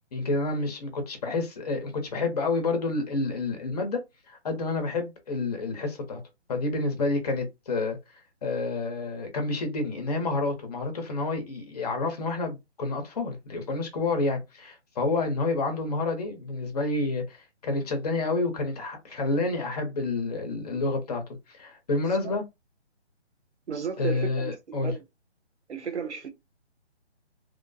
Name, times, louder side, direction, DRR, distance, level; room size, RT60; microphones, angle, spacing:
voice 1, 0.1-4.0 4.3-6.2 6.5-8.0 8.4-22.4 24.0-25.0, left 3 dB, 35° left, 0.9 m, -29 dB
voice 2, 23.7-25.0 25.7-26.3, right 6 dB, 75° right, 1.1 m, -34 dB
3.1 x 2.1 x 2.6 m
hypercardioid pair, 160°, 34 cm